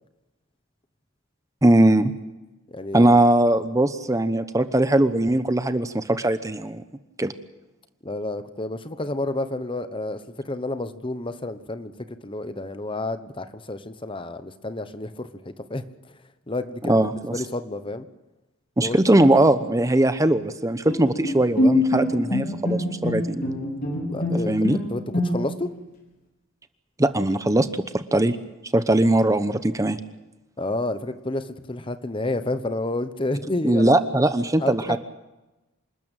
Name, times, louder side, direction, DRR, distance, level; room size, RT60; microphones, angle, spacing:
voice 1, 1.6-2.1 2.9-6.8 7.2-7.3 16.9-17.4 18.8-23.4 24.5-24.8 27.0-27.7 27.9-28.4 28.7-30.0 33.6-35.0, right 1 dB, 15° right, 11 dB, 0.9 m, -20 dB
voice 2, 2.7-3.2 8.0-15.8 16.5-18.1 18.8-19.0 24.1-25.7 30.6-34.0 34.6-35.0, left 2 dB, 25° left, 11 dB, 1.0 m, -30 dB
Bowed string instrument, 20.8-25.7, left 1 dB, 45° left, 4.8 m, -25 dB
27.0 x 13.0 x 9.0 m, 1.0 s
head